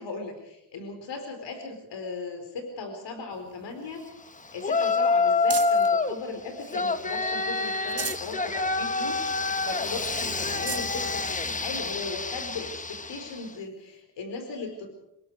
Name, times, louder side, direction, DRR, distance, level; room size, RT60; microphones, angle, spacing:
voice 1, 0.0-4.0 4.5-14.9, left 4 dB, 85° left, 5 dB, 4.6 m, -37 dB
sound 1, 3.3-6.0 6.5-7.3 7.7-8.4 8.8-8.9 9.3-9.4 10.0-10.1 10.4-10.9 11.7-11.8 13.6-13.7, right 6 dB, 35° right, 1.8 m, -39 dB
Yell, 4.6-6.2 6.7-13.4, left 3 dB, 20° left, 1.0 m, -27 dB
26.5 x 20.5 x 4.9 m, 0.82 s
cardioid pair, 120°, 42 cm